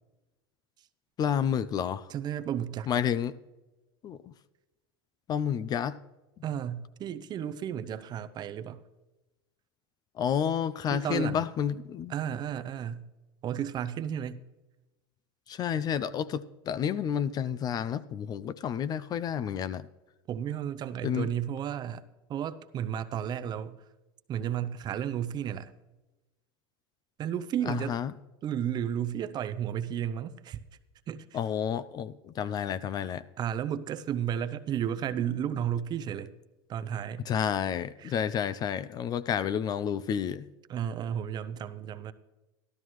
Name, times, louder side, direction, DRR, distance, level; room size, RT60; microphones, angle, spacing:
voice 1, 1.2-2.1 2.9-3.4 4.0-4.3 5.3-6.0 10.2-12.1 15.5-19.9 21.0-21.3 27.7-28.1 31.3-33.2 37.3-40.5, left 8 dB, 30° left, 0.4 m, -30 dB
voice 2, 2.1-2.9 6.4-8.8 10.9-11.5 12.1-13.1 13.4-14.4 20.3-22.0 22.3-23.8 24.3-25.7 27.2-28.0 28.4-30.6 31.1-31.4 33.4-36.3 36.7-37.3 38.0-38.2 40.7-42.1, right 9 dB, 30° right, 0.6 m, -33 dB
13.0 x 12.5 x 3.1 m
supercardioid pair, 120°, 13 cm